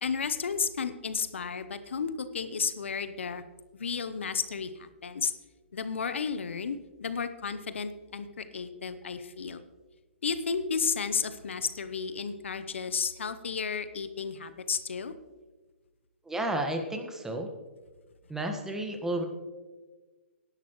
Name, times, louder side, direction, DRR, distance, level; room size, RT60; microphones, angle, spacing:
voice 1, 0.0-3.4 3.7-5.3 5.7-9.6 10.2-15.1, left 6 dB, 75° left, 12 dB, 0.9 m, -33 dB
voice 2, 16.3-17.5 18.3-19.2, right 1 dB, 5° right, 4 dB, 1.4 m, -32 dB
18.5 x 11.0 x 3.1 m, 1.3 s
hypercardioid pair, 125°, 7 cm